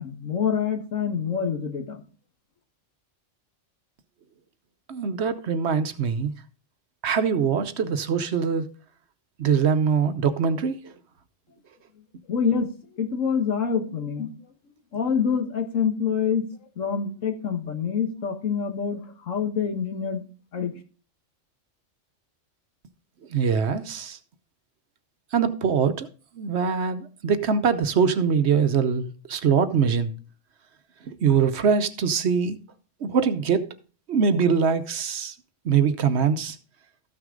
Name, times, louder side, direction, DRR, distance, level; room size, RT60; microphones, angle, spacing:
voice 1, 0.0-2.0 12.3-12.7 13.0-14.3 14.9-16.5 16.8-20.2 20.5-20.8, left 6 dB, 80° left, 1.8 m, -26 dB
voice 2, 4.9-6.3 7.0-8.7 9.4-10.9 23.3-24.2 25.3-26.1 26.4-30.1 31.1-32.6 33.0-33.7 34.1-35.3 35.6-36.6, right 6 dB, 60° right, 1.0 m, -23 dB
13.5 x 6.2 x 3.8 m
omnidirectional pair, 1.3 m